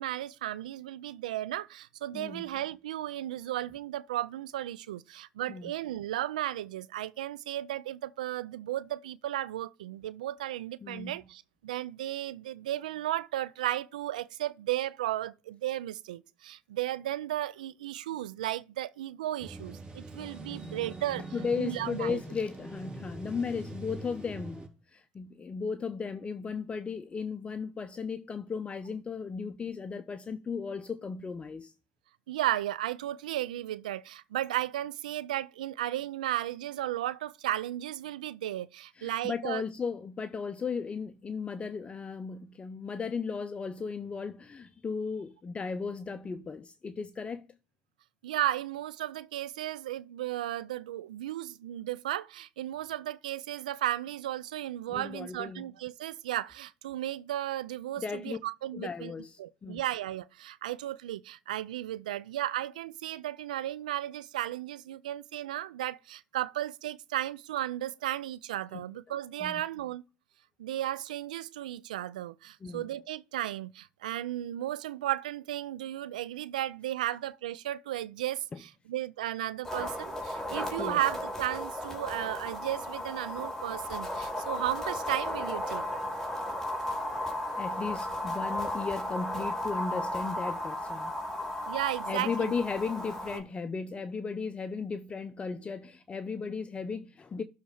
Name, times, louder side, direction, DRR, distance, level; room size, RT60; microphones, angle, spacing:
voice 1, 0.0-21.2 21.6-22.2 32.3-39.6 48.2-59.1 59.4-70.0 70.6-85.8 91.7-92.5 93.3-93.4, right 13 dB, 85° right, 0.4 m, -34 dB
voice 2, 2.1-2.5 5.5-5.6 10.8-11.2 21.3-31.7 39.0-47.5 54.9-55.7 58.0-58.4 58.7-59.8 68.7-68.8 69.4-69.5 72.6-72.9 80.8-81.0 87.5-91.1 92.1-97.4, left 5 dB, 25° left, 0.7 m, -36 dB
sound 1, 19.4-24.7, right 2 dB, 20° right, 4.2 m, -43 dB
sound 2, 79.6-93.4, left 1 dB, 10° left, 3.2 m, -35 dB
12.0 x 4.2 x 4.9 m
hypercardioid pair, 70°, 4 cm